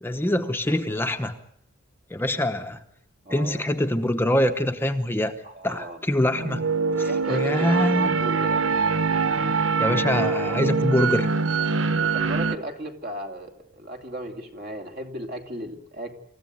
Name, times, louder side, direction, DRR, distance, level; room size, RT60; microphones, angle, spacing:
voice 1, 0.0-1.4 2.1-2.8 3.3-5.4 5.6-6.7 7.0-8.2 9.8-11.3, left 1 dB, 10° left, 6 dB, 1.0 m, -24 dB
voice 2, 3.2-3.7 5.4-6.0 7.0-8.7 12.0-16.2, right 1 dB, 50° right, 5 dB, 2.8 m, -36 dB
sound 1, 6.2-12.6, right 4 dB, 65° right, 1.0 m, -24 dB
27.0 x 15.0 x 9.4 m, 0.72 s
head